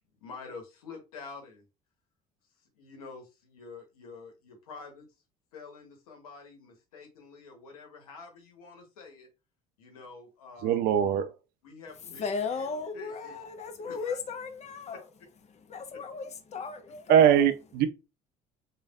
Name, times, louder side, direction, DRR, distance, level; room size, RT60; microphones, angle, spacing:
voice 1, 0.2-1.7 2.7-5.1 5.5-9.3 9.8-10.9 11.6-12.7 12.9-13.4 13.8-14.2 15.9-16.0, left 4 dB, 85° left, 0.9 m, -47 dB
voice 2, 10.6-11.3 17.1-17.9, right 9 dB, 60° right, 0.5 m, -21 dB
voice 3, 12.2-15.1 15.5-17.4, left 5 dB, 40° left, 0.8 m, -36 dB
3.2 x 2.3 x 2.4 m
hypercardioid pair, 65°, 18 cm